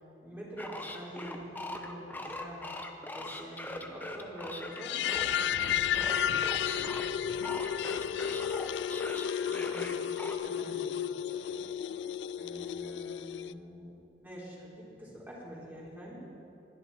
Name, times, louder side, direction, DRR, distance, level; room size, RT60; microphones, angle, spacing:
voice 1, 0.2-2.7 3.1-6.1 9.5-10.0 10.4-10.8 12.4-16.2, equal, 10° right, -6 dB, 3.9 m, -45 dB
sound 1, 0.6-7.1 7.4-10.4, left 2 dB, 10° left, 0.9 m, -41 dB
sound 2, 4.7-13.5, left 9 dB, 75° left, 0.3 m, -32 dB
voice 2, 6.6-7.1 7.6-8.3 10.4-10.8 11.2-12.1, left 1 dB, 45° left, -4 dB, 3.6 m, -57 dB
21.0 x 12.5 x 4.3 m, 2.8 s
head